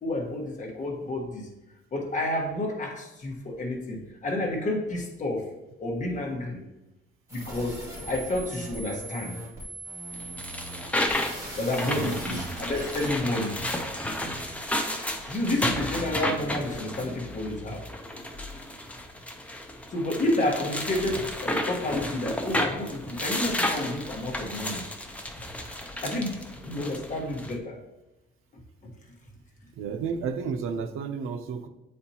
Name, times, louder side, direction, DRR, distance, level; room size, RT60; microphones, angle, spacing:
voice 1, 0.0-1.5 1.9-5.5 5.8-6.6 7.3-9.3 11.5-13.6 15.3-17.8 19.9-24.8 26.0-27.8, left 1 dB, 40° left, 1 dB, 1.2 m, -30 dB
sound 1, 7.3-18.5, right 1 dB, 15° right, 2.3 m, -41 dB
sound 2, 10.1-27.5, left 1 dB, 5° left, 0.5 m, -32 dB
voice 2, 11.8-12.6 20.9-21.3 29.8-31.7, right 6 dB, 85° right, 7 dB, 0.6 m, -33 dB
8.6 x 4.4 x 2.8 m, 0.97 s
cardioid pair, 160°, 21 cm